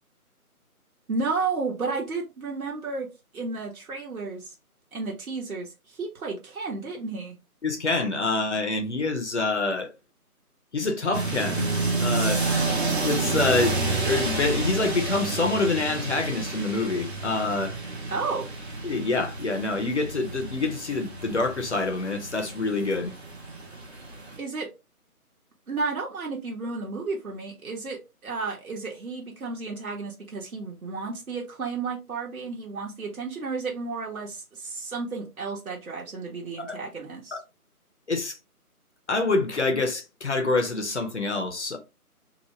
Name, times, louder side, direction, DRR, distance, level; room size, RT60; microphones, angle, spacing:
voice 1, 1.1-4.5 4.9-7.3 18.1-18.5 24.4-24.7 25.7-37.4, right 4 dB, 65° right, 1.0 m, -32 dB
voice 2, 7.6-9.9 10.7-11.7 12.0-12.4 13.0-17.8 18.8-23.1 36.6-36.8 37.3-37.4 38.1-38.4 39.1-41.8, left 3 dB, 50° left, 0.6 m, -26 dB
sound 1, 11.1-24.4, right 3 dB, 45° right, 0.8 m, -30 dB
2.9 x 2.0 x 3.0 m
figure-of-eight pair, 165°, 45 cm